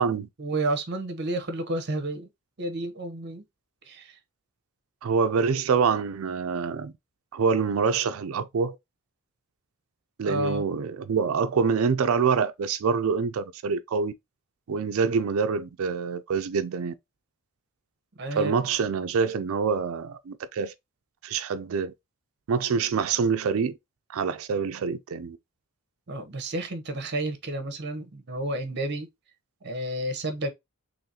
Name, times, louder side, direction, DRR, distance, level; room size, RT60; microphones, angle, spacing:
voice 1, 0.4-2.3 2.6-3.4 3.9-4.1 10.2-10.6 18.2-18.5 26.1-29.1 29.6-30.5, right 1 dB, 50° right, 0.8 m, -31 dB
voice 2, 5.0-6.9 7.3-8.8 10.2-14.1 14.7-16.9 18.3-20.7 21.2-21.9 22.5-23.8 24.1-25.4, right 5 dB, 65° right, 0.4 m, -26 dB
3.9 x 3.1 x 2.7 m
head